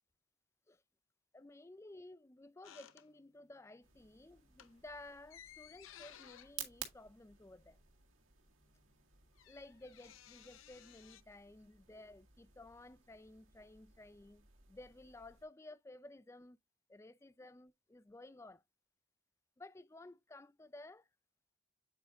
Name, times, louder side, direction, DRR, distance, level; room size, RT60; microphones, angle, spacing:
voice 1, 1.3-7.8 9.5-16.6 16.9-18.6 19.6-21.1, left 2 dB, 15° left, 0.3 m, -55 dB
sound 1, 2.6-3.6 3.9-4.1 4.5-7.9 8.2-8.3 8.5-11.2, left 10 dB, 85° left, 0.7 m, -59 dB
sound 2, 3.8-15.4, right 10 dB, 85° right, 2.0 m, -55 dB
8.6 x 5.0 x 2.6 m
head